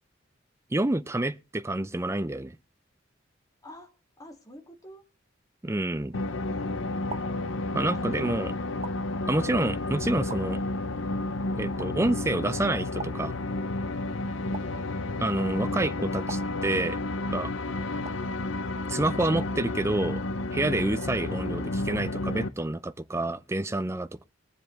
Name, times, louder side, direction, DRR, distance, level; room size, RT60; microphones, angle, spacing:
voice 1, 0.7-2.6 5.6-6.2 7.7-8.5 9.3-10.6 11.6-13.3 15.2-17.0 17.3-17.5 18.9-20.2 20.5-24.2, right 2 dB, 15° right, 0.5 m, -28 dB
voice 2, 3.6-5.0 7.9-9.0, equal, 20° left, 2.3 m, -49 dB
sound 1, 6.0-6.4 7.1-8.1 8.8-9.7 10.3-11.1 11.8-12.4 13.0-13.9 14.5-15.4 16.3-17.2 18.0-18.6, right 4 dB, 35° right, 0.9 m, -45 dB
sound 2, 6.1-22.5, left 2 dB, 75° left, 0.8 m, -31 dB
21.5 x 7.4 x 3.2 m
head